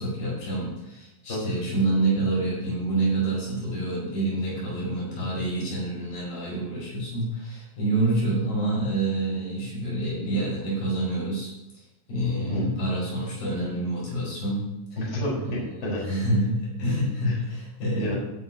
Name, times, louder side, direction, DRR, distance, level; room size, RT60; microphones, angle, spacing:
voice 1, 0.0-11.8 12.1-14.6 16.0-18.2, right 2 dB, 85° left, -6 dB, 6.9 m, -27 dB
voice 2, 12.3-12.7 15.0-16.0 17.2-17.4 18.0-18.1, equal, 30° left, -6 dB, 4.9 m, -30 dB
16.5 x 10.0 x 2.9 m, 0.93 s
omnidirectional pair, 3.8 m